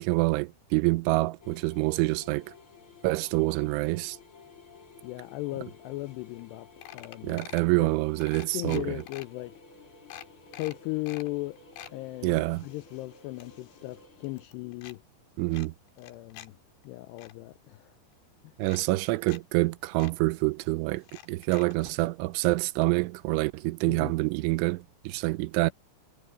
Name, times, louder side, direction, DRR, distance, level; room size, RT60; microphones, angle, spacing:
voice 1, 0.0-2.5 3.0-4.2 7.2-8.9 12.2-12.6 15.4-15.7 18.6-25.7, right 22 dB, 90° right, 3.0 m, -27 dB
sound 1, 1.4-14.4, left 4 dB, 35° left, 3.1 m, -53 dB
voice 2, 5.0-6.7 6.9-7.4 7.8-7.9 8.5-9.6 10.5-11.6 11.9-15.0 16.0-16.6 16.8-18.0 18.4-18.5 23.9-24.1, left 20 dB, 90° left, 2.4 m, -37 dB
sound 2, 6.1-6.2 6.4-6.5 6.8-7.7 8.2-9.3 9.7-9.8 10.1-11.3 11.6-12.0 12.5-14.0 14.2-15.0 15.5-16.5 16.8-17.3 18.1-18.2 18.6-19.4 19.7-19.8 20.0-20.1 21.0-21.9 22.8-22.9 23.2-23.3, left 12 dB, 70° left, 3.9 m, -47 dB
omnidirectional pair, 5.4 m